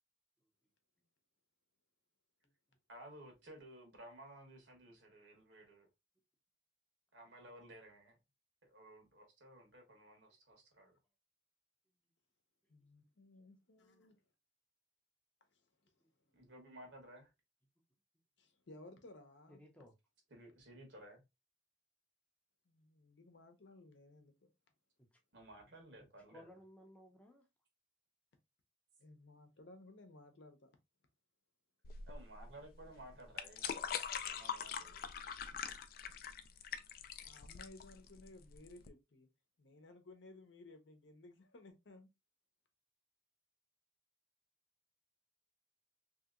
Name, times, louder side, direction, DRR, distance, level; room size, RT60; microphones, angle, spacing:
voice 1, 2.9-5.9 7.1-8.2 8.6-11.0 16.3-17.3 20.3-21.2 25.3-26.5 32.1-35.1, right 1 dB, 70° right, 1.2 m, -56 dB
voice 2, 12.7-14.2 15.5-15.6 18.4-19.6 22.7-24.5 29.0-30.7 37.2-39.3 39.6-42.1, left 2 dB, 75° left, 0.7 m, -58 dB
voice 3, 19.5-19.9 25.0-25.1 26.0-27.5, equal, 5° left, 0.6 m, -59 dB
sound 1, 31.8-38.9, left 7 dB, 50° left, 0.3 m, -43 dB
2.9 x 2.8 x 2.4 m
head